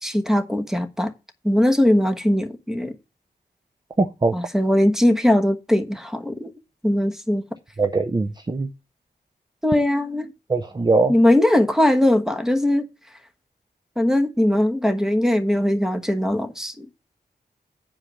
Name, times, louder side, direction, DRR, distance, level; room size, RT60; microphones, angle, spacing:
voice 1, 0.0-1.1 1.4-2.9 4.3-6.5 6.8-7.4 9.6-10.3 11.1-12.9 14.0-16.9, left 1 dB, 5° right, 1.2 m, -20 dB
voice 2, 4.0-4.3 7.8-8.7 10.5-11.2, right 3 dB, 25° right, 0.6 m, -21 dB
8.8 x 4.9 x 6.9 m
wide cardioid pair, 80°, 17 cm